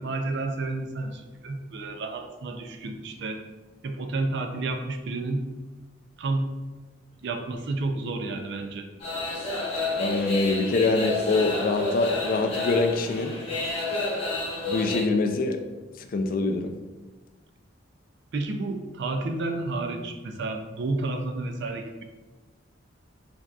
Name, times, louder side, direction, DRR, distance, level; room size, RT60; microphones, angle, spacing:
voice 1, 0.0-3.4 3.8-5.5 6.2-6.5 7.2-8.9 18.3-22.0, right 2 dB, 60° right, 5 dB, 0.4 m, -30 dB
sound 1, 9.0-15.0, left 2 dB, 30° left, 0.9 m, -30 dB
voice 2, 10.0-13.4 14.7-15.6 16.0-16.7, left 3 dB, 45° left, 6 dB, 0.3 m, -24 dB
4.5 x 2.7 x 2.3 m, 1.2 s
head